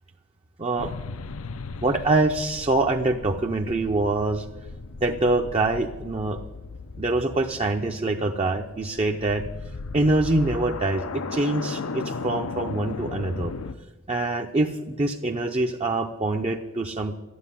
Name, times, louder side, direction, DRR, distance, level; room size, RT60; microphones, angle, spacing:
voice 1, 0.6-0.9 1.8-4.4 5.0-6.4 7.0-9.4 9.9-13.5 14.1-17.2, right 2 dB, 25° right, 3 dB, 0.6 m, -24 dB
sound 1, 0.8-13.8, left 4 dB, 75° left, 0.6 m, -36 dB
12.5 x 9.5 x 10.0 m, 1.1 s
head